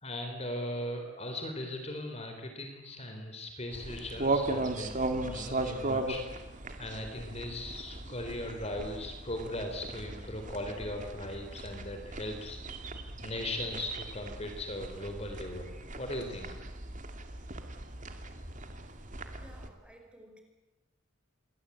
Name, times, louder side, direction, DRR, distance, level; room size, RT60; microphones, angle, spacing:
voice 1, 0.0-6.2 6.8-12.6 13.2-16.6, left 1 dB, 30° left, 5 dB, 3.8 m, -38 dB
sound 1, 3.7-19.7, right 2 dB, 40° right, 2.6 m, -37 dB
voice 2, 19.3-20.4, right 1 dB, 5° right, 3 dB, 5.1 m, -55 dB
28.0 x 23.0 x 8.6 m, 1.0 s
head